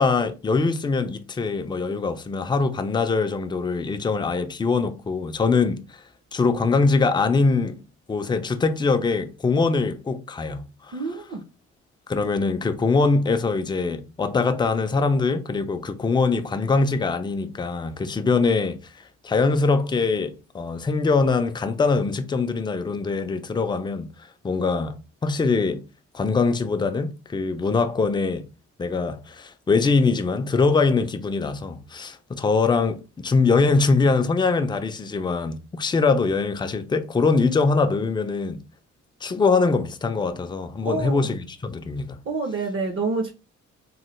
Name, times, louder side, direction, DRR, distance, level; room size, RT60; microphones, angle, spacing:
voice 1, 0.0-6.0 6.3-7.8 8.1-10.6 12.1-18.8 19.2-24.1 24.4-25.0 25.2-25.8 26.1-28.5 28.8-38.6 39.2-42.2, left 4 dB, 15° left, 0.4 m, -23 dB
voice 2, 10.9-11.4 40.8-41.3 42.3-43.3, right 3 dB, 45° right, 0.7 m, -27 dB
3.1 x 2.1 x 3.0 m
cardioid pair, 90°, 30 cm